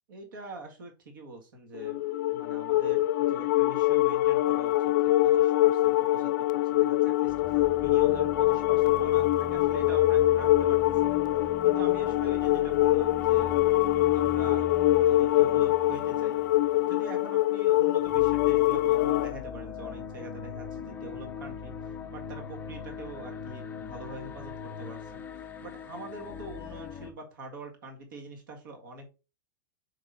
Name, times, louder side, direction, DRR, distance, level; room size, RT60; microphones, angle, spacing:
voice 1, 0.1-2.0 2.3-7.3 7.8-11.2 11.6-13.6 14.1-14.7 14.9-16.4 16.9-21.7 22.1-25.2 25.6-29.1, right 2 dB, 75° right, 3 dB, 1.8 m, -44 dB
sound 1, 1.7-19.3, left 16 dB, 65° left, 0.4 m, -24 dB
sound 2, 7.3-27.1, left 5 dB, 15° left, 0.5 m, -41 dB
8.3 x 5.2 x 2.6 m, 0.31 s
supercardioid pair, 155°, 11 cm